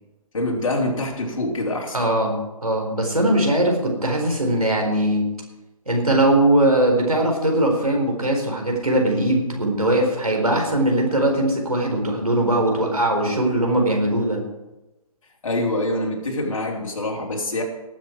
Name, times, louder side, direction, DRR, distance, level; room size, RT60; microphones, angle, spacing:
voice 1, 0.3-2.0 15.4-17.6, left 1 dB, 65° left, 0 dB, 3.5 m, -25 dB
voice 2, 1.9-2.4 2.6-5.2 5.9-14.4, right 1 dB, 90° right, 1 dB, 4.3 m, -20 dB
18.5 x 7.9 x 4.7 m, 1.0 s
figure-of-eight pair, 135°, 19 cm